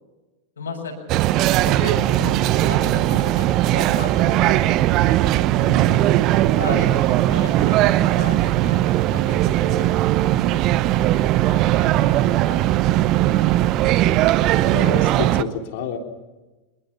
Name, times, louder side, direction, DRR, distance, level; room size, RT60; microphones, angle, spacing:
voice 1, 0.6-1.0 1.6-5.3 5.5-6.2 6.6-13.0 13.2-13.7, left 3 dB, 70° left, -2 dB, 6.9 m, -35 dB
sound 1, 1.1-15.4, right 14 dB, 40° right, 0.9 m, -19 dB
voice 2, 14.7-16.0, left 7 dB, 50° left, 4 dB, 3.6 m, -29 dB
26.0 x 22.5 x 6.0 m, 1.1 s
figure-of-eight pair, 90°, 0 cm